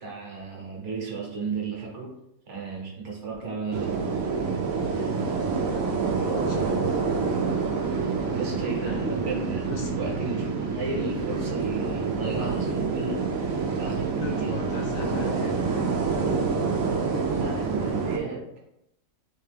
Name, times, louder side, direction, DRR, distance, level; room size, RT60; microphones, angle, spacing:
voice 1, 0.0-2.1 2.5-3.9 8.3-13.2 13.8-15.1 17.3-18.4, right 4 dB, 60° right, -1 dB, 1.3 m, -34 dB
sound 1, 3.7-18.2, right 4 dB, 85° right, 1.1 m, -27 dB
voice 2, 4.9-6.9 8.8-9.2 9.7-9.9 12.7-12.8 14.1-15.6, left 3 dB, 60° left, 0 dB, 0.9 m, -37 dB
3.5 x 3.3 x 3.4 m, 0.83 s
omnidirectional pair, 1.4 m